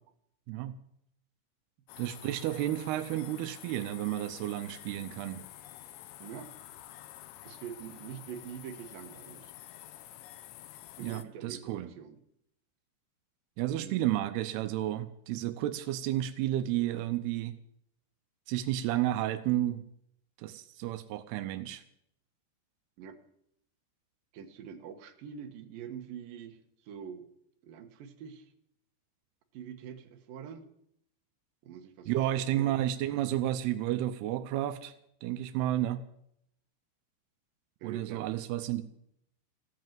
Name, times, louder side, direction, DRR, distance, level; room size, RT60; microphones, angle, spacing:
sound 1, 1.9-11.2, left 13 dB, 80° left, 3.3 m, -49 dB
voice 1, 2.0-5.4 11.0-11.9 13.6-17.6 18.5-19.8 20.4-21.8 32.1-34.9 35.2-36.0 37.8-38.8, right 13 dB, 90° right, 10 dB, 2.3 m, -31 dB
voice 2, 6.2-6.5 7.4-9.5 11.0-12.2 13.7-14.0 23.0-23.2 24.3-27.3 27.6-28.5 29.5-30.7 31.6-32.7 37.8-38.3, right 8 dB, 65° right, 5 dB, 2.5 m, -45 dB
15.0 x 11.0 x 7.6 m, 0.73 s
omnidirectional pair, 5.5 m